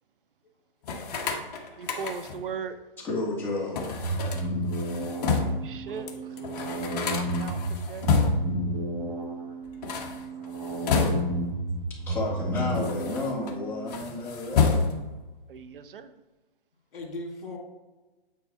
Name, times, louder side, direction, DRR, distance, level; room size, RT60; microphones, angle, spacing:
sound 1, 0.8-2.5 3.7-5.7 6.1-6.2 6.4-8.6 9.7-11.5 12.3-13.5 13.9-15.2, left 5 dB, 45° left, 1.2 m, -29 dB
voice 1, 1.8-2.8 5.4-6.1 7.1-8.1 15.5-16.1, right 6 dB, 65° right, 11 dB, 0.8 m, -38 dB
voice 2, 3.0-3.8 12.0-14.8, left 2 dB, 5° left, -7 dB, 1.8 m, -32 dB
sound 2, 3.9-13.9, right 1 dB, 20° right, 1.2 m, -32 dB
voice 3, 5.8-6.7 9.5-9.9 11.8-12.1 16.9-17.6, left 2 dB, 65° left, 1 dB, 2.4 m, -42 dB
9.3 x 4.0 x 4.2 m, 1.2 s
hypercardioid pair, 155°, 29 cm